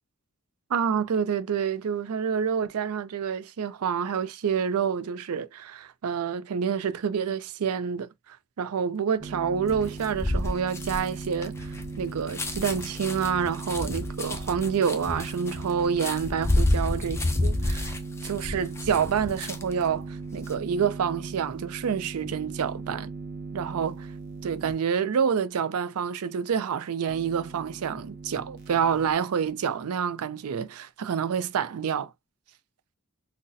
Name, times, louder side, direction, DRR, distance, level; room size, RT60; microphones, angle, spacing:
voice 1, 0.7-18.0 18.2-23.1 23.5-24.1 24.4-32.1, right 7 dB, 85° right, 0.4 m, -28 dB
sound 1, 9.2-24.7 27.1-29.1, right 4 dB, 45° right, 0.6 m, -39 dB
sound 2, 9.7-19.8 20.2-20.5, left 1 dB, 10° left, 0.4 m, -30 dB
3.9 x 2.1 x 2.5 m
head